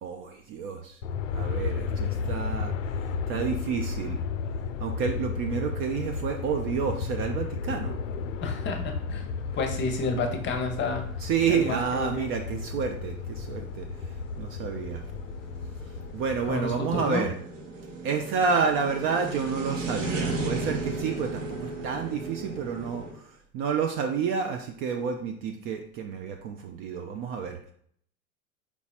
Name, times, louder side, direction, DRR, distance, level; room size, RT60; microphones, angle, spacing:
voice 1, 0.0-1.0 1.3-2.7 3.3-4.2 4.8-8.0 11.2-13.9 14.4-15.0 16.1-17.3 18.0-27.7, right 6 dB, 35° right, 4 dB, 0.4 m, -29 dB
Aircraft, 1.0-17.2, left 5 dB, 70° left, 0.5 m, -33 dB
voice 2, 8.4-9.3 9.6-11.1 11.5-12.3 16.5-17.2, left 3 dB, 25° left, 4 dB, 0.8 m, -30 dB
sound 1, 10.6-23.1, right 2 dB, 65° right, 1.2 m, -36 dB
4.6 x 4.0 x 2.4 m, 0.62 s
figure-of-eight pair, 80°, 41 cm